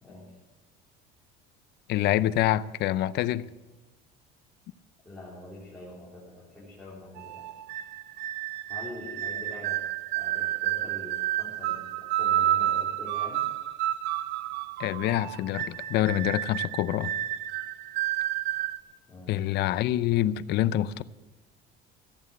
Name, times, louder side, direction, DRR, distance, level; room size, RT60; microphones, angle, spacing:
voice 1, 0.0-0.4 5.1-7.5 8.7-9.8 10.1-13.5 19.1-19.5, left 1 dB, 5° left, 3.5 m, -44 dB
voice 2, 1.9-3.4 14.8-17.1 19.3-21.0, left 13 dB, 55° left, 0.5 m, -26 dB
sound 1, 7.2-18.8, right 12 dB, 55° right, 0.6 m, -30 dB
14.5 x 8.7 x 7.5 m
cardioid pair, 150°, 21 cm